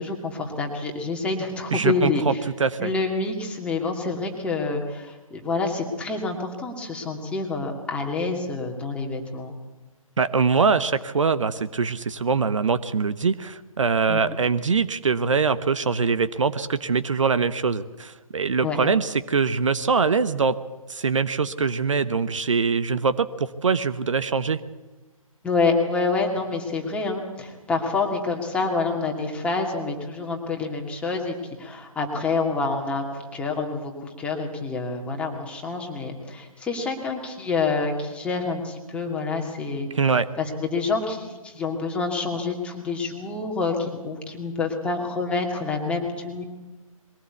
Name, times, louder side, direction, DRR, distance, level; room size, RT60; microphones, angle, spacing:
voice 1, 0.0-2.4 2.8-9.5 14.1-14.2 18.6-18.8 25.4-39.9 40.4-46.4, left 3 dB, 5° left, 1 dB, 2.5 m, -27 dB
voice 2, 1.7-2.9 10.2-20.5 20.9-24.6 39.9-40.3, right 5 dB, 60° right, 12 dB, 1.0 m, -23 dB
22.0 x 18.0 x 8.3 m, 1.1 s
figure-of-eight pair, 140°, 18 cm